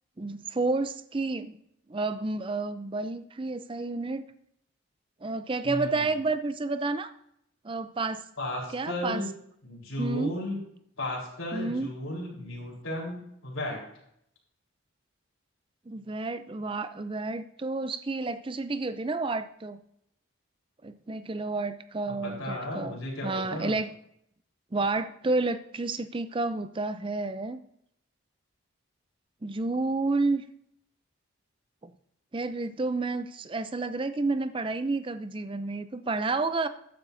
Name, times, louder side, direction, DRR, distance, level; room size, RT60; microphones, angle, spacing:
voice 1, 0.2-1.6 1.9-4.3 5.2-7.1 7.6-8.2 8.7-9.2 10.0-10.3 11.5-11.9 15.9-19.8 20.8-23.0 23.2-23.9 24.7-27.6 29.4-30.4 31.8-31.9 32.3-36.7, right 3 dB, 25° right, 11 dB, 0.5 m, -30 dB
voice 2, 5.6-6.0 8.4-9.3 9.6-10.6 11.0-13.8 22.1-23.8, left 1 dB, 85° left, -3 dB, 4.0 m, -34 dB
13.0 x 9.9 x 2.7 m, 0.73 s
head